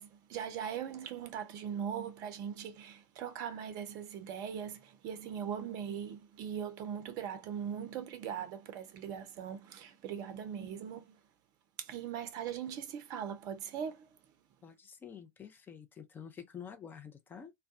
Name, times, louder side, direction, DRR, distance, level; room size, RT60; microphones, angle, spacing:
voice 1, 0.0-11.2 11.8-14.1, right 8 dB, 40° right, 0.5 m, -40 dB
voice 2, 14.6-17.5, left 7 dB, 20° left, 0.5 m, -48 dB
2.2 x 2.2 x 2.6 m
figure-of-eight pair, 85°, 10 cm